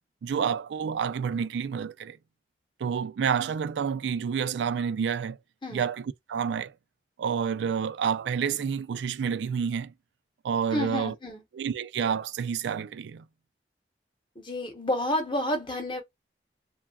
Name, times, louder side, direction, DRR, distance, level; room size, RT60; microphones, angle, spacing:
voice 1, 0.2-2.2 2.8-5.4 5.7-6.7 7.2-9.9 10.4-11.1 11.5-13.2, right 7 dB, 80° right, 0.3 m, -29 dB
voice 2, 10.7-11.4 14.4-16.0, left 1 dB, 30° left, 0.8 m, -30 dB
3.1 x 2.3 x 2.3 m
head